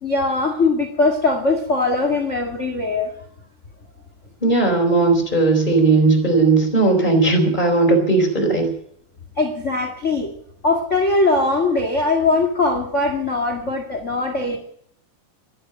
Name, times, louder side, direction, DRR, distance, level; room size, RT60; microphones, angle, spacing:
voice 1, 0.0-3.1 9.4-10.3 10.6-14.6, left 3 dB, 85° left, 7 dB, 0.6 m, -20 dB
voice 2, 4.4-8.7, right 3 dB, 10° left, 2 dB, 3.8 m, -17 dB
13.5 x 12.0 x 8.9 m, 0.66 s
omnidirectional pair, 4.8 m